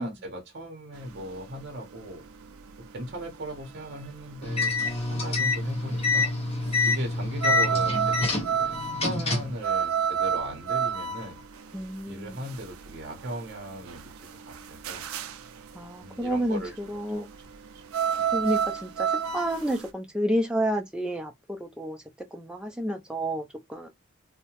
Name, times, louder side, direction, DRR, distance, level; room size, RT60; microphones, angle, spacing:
voice 1, 0.0-2.2 2.9-4.7 5.1-6.3 6.8-8.8 9.0-11.4 12.1-15.1 16.0-16.7 17.1-17.2, equal, 50° right, 0.7 m, -38 dB
sound 1, 0.9-19.9, right 8 dB, 80° right, 0.4 m, -31 dB
sound 2, 4.4-9.6, left 3 dB, 30° left, 0.8 m, -27 dB
voice 2, 11.7-12.4 15.7-17.3 18.3-22.0 22.3-23.9, equal, 5° right, 0.3 m, -30 dB
2.7 x 2.1 x 2.9 m
head